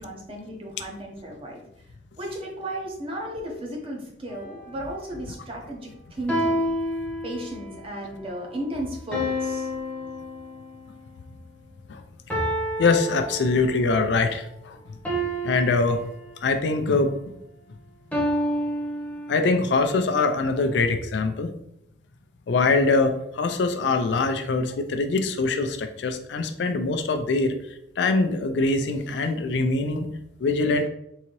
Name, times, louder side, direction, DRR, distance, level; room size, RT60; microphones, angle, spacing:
voice 1, 0.0-1.6 2.1-6.7 7.2-9.7, right 1 dB, 30° right, -1 dB, 0.7 m, -34 dB
sound 1, 4.3-4.7 6.3-7.8 9.1-10.9 12.3-13.9 15.0-16.7 18.1-19.7, equal, 5° left, 0.8 m, -29 dB
voice 2, 12.8-14.8 15.4-16.0 16.4-17.4 19.3-21.5 22.5-27.6 28.0-30.9, left 3 dB, 70° left, 7 dB, 0.4 m, -23 dB
3.8 x 2.7 x 3.0 m, 0.77 s
head